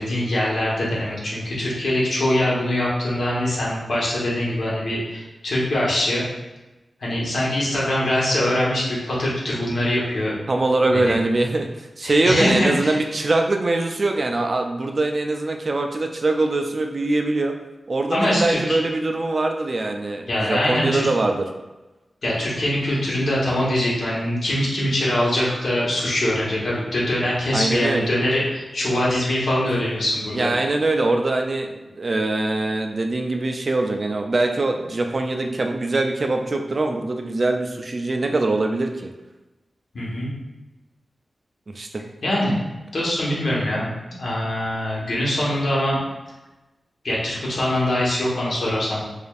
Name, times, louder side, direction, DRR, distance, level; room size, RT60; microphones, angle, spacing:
voice 1, 0.0-6.2 7.0-10.4 10.9-11.1 12.0-13.0 18.1-18.6 20.3-21.1 22.2-30.5 39.9-40.3 42.2-42.6 42.9-43.9 44.2-46.0 47.0-49.0, left 1 dB, 70° left, -5 dB, 1.2 m, -23 dB
voice 2, 10.5-17.5 17.9-21.5 27.5-28.1 30.3-39.1 41.7-42.0, right 2 dB, 45° right, 3 dB, 0.3 m, -23 dB
4.9 x 2.6 x 2.4 m, 1.1 s
wide cardioid pair, 110°, 0 cm